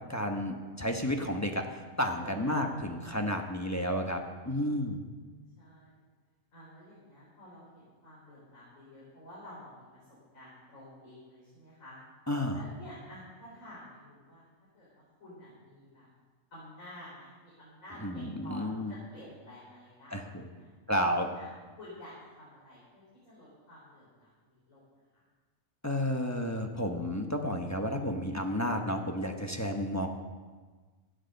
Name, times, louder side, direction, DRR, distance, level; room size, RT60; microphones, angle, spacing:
voice 1, 0.1-5.0 12.3-12.6 18.0-18.9 20.1-20.4 20.9-21.3 25.8-30.1, equal, 15° left, 3 dB, 0.9 m, -31 dB
voice 2, 2.2-3.3 4.6-4.9 5.2-6.0 6.5-12.0 12.5-16.1 16.5-20.7 21.4-21.5 21.8-24.8 25.1-25.2, left 1 dB, 90° left, -8 dB, 4.5 m, -51 dB
16.0 x 8.0 x 6.6 m, 1.4 s
omnidirectional pair, 1.4 m